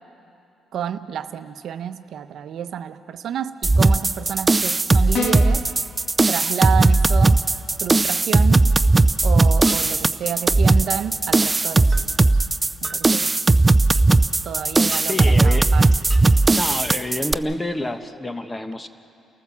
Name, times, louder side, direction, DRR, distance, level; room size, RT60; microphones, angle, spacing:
voice 1, 0.7-5.7 6.3-7.4 7.8-8.7 9.2-12.3 12.8-13.4 14.4-15.9, right 9 dB, 70° right, 10 dB, 0.8 m, -29 dB
sound 1, 3.6-17.3, right 2 dB, 20° right, 0.5 m, -17 dB
sound 2, 5.1-5.7, left 6 dB, 70° left, 1.5 m, -26 dB
sound 3, 8.5-8.6 9.7-9.8 10.7-10.8 11.9-12.1 12.8-13.0 14.0-14.4 14.9-15.1 16.1-16.3, right 1 dB, ahead, 2.3 m, -38 dB
voice 2, 15.0-15.7 16.5-18.9, left 1 dB, 15° left, 8 dB, 1.1 m, -28 dB
30.0 x 14.5 x 7.2 m, 2.8 s
cardioid pair, 90°, 0 cm